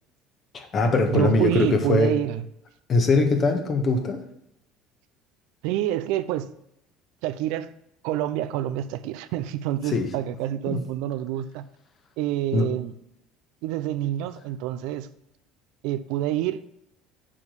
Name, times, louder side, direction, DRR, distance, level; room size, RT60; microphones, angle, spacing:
voice 1, 0.5-2.1 2.9-4.2 9.9-10.1 10.7-10.8 12.5-12.7, left 3 dB, 45° left, 1.6 m, -21 dB
voice 2, 1.1-2.4 5.6-6.5 7.2-7.7 8.0-11.6 12.2-12.9 13.6-15.1 15.8-16.6, right 12 dB, 75° right, 0.6 m, -27 dB
7.2 x 4.8 x 6.9 m
supercardioid pair, 80°, 0 cm